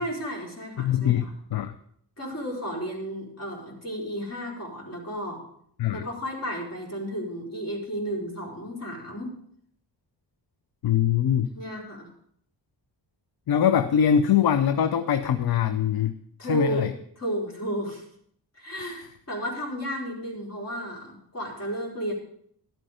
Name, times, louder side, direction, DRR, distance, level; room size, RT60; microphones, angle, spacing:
voice 1, 0.0-1.3 2.2-5.4 5.9-9.3 11.5-12.1 16.4-16.8 17.2-18.0 18.5-22.1, equal, 35° left, -2 dB, 4.5 m, -33 dB
voice 2, 0.8-1.7 5.8-6.1 10.8-11.5 13.5-16.2 16.5-16.9 18.8-19.0, left 9 dB, 60° left, 11 dB, 0.7 m, -23 dB
12.0 x 8.9 x 5.0 m, 0.67 s
cardioid pair, 100°, 42 cm